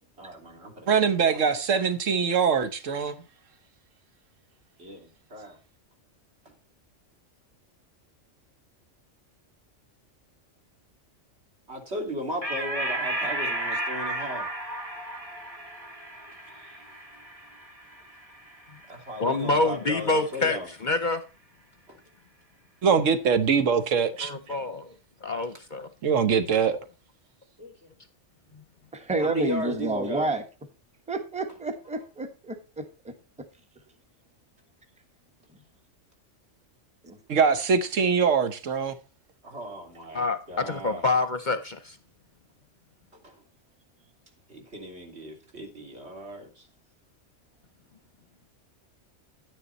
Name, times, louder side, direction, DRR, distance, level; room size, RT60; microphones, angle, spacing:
voice 1, 0.2-1.4 4.8-5.6 6.4-6.5 11.7-14.5 18.7-20.7 21.9-22.0 26.5-26.7 27.6-27.9 28.5-28.6 29.2-30.3 39.4-41.1 43.1-43.3 44.5-46.7, equal, 60° right, 3.5 m, -37 dB
voice 2, 0.9-3.2 22.8-24.3 26.0-26.8 37.3-38.9, right 6 dB, 85° right, 1.4 m, -23 dB
sound 1, 12.4-19.3, right 1 dB, 30° right, 2.1 m, -33 dB
voice 3, 19.2-21.2 24.2-24.9 25.2-25.9 40.1-42.0, left 3 dB, 45° left, 0.7 m, -27 dB
voice 4, 28.9-30.4 31.1-33.1 37.0-37.2, right 2 dB, 5° right, 1.3 m, -29 dB
11.0 x 9.6 x 4.1 m
omnidirectional pair, 1.3 m